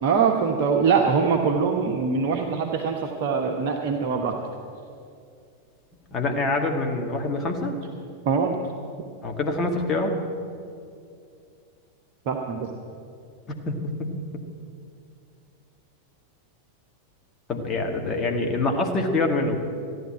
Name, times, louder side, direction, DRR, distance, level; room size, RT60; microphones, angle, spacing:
voice 1, 0.0-4.4 8.2-8.6 12.3-12.7, right 5 dB, 45° right, 1 dB, 1.1 m, -23 dB
voice 2, 6.1-7.7 9.2-10.2 13.7-13.8 17.5-19.6, left 2 dB, 25° left, 2 dB, 2.0 m, -25 dB
14.5 x 10.5 x 8.0 m, 2.4 s
figure-of-eight pair, 90°, 0 cm